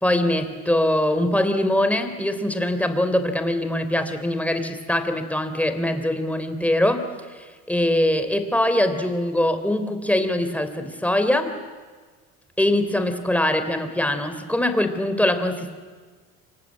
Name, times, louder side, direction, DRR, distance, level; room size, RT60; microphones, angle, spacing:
voice 1, 0.0-7.0 7.3-11.5 12.6-15.7, left 1 dB, 5° left, 8 dB, 3.5 m, -22 dB
29.0 x 24.0 x 8.6 m, 1.4 s
supercardioid pair, 90°, 32 cm